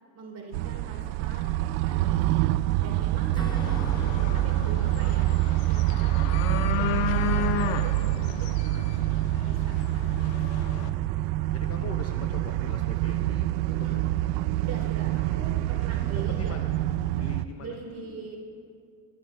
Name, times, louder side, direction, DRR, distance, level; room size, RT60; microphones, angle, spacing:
voice 1, 0.1-1.5 1.8-2.2 2.8-5.3 5.7-10.8 13.7-14.0 14.5-16.7 17.6-18.4, right 3 dB, 30° right, 0 dB, 3.4 m, -43 dB
sound 1, 0.5-17.5, right 15 dB, 75° right, 0.6 m, -26 dB
Acoustic guitar / Strum, 3.3-8.1, right 1 dB, 10° left, 1.2 m, -43 dB
sound 2, 3.5-10.9, left 11 dB, 65° left, 1.0 m, -34 dB
voice 2, 11.5-14.1 16.3-16.7 17.1-18.3, left 6 dB, 30° left, 5 dB, 0.8 m, -42 dB
28.5 x 11.0 x 3.4 m, 2.4 s
supercardioid pair, 110°, 49 cm